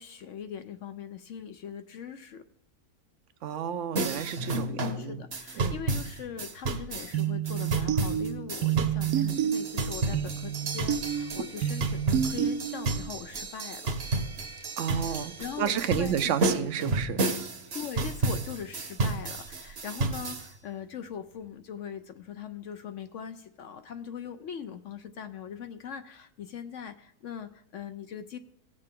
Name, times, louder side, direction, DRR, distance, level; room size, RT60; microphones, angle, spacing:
voice 1, 0.0-2.4 4.7-14.0 14.9-16.5 17.7-28.4, left 8 dB, 65° left, 9 dB, 0.8 m, -41 dB
voice 2, 3.4-5.2 5.6-5.8 14.8-17.2, right 8 dB, 60° right, 11 dB, 0.9 m, -31 dB
sound 1, 4.0-20.5, right 2 dB, 45° right, 1.1 m, -32 dB
sound 2, 7.1-13.1, right 9 dB, 80° right, 1.1 m, -30 dB
18.0 x 6.7 x 3.6 m, 0.77 s
omnidirectional pair, 1.6 m